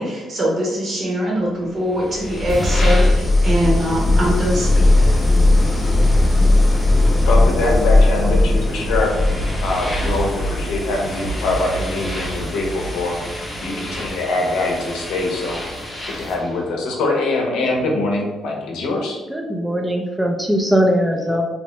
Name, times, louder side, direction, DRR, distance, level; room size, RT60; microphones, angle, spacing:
voice 1, 0.0-5.1, equal, 50° right, -3 dB, 1.0 m, -22 dB
sound 1, 1.9-16.5, left 2 dB, 20° left, 0.7 m, -19 dB
voice 2, 7.3-9.1 9.6-13.1 13.6-15.6 16.2-19.2, left 2 dB, 85° left, -1 dB, 0.7 m, -23 dB
voice 3, 19.3-21.4, equal, 5° right, 1 dB, 0.4 m, -20 dB
2.8 x 2.2 x 3.0 m, 1.1 s
cardioid pair, 90°, 0 cm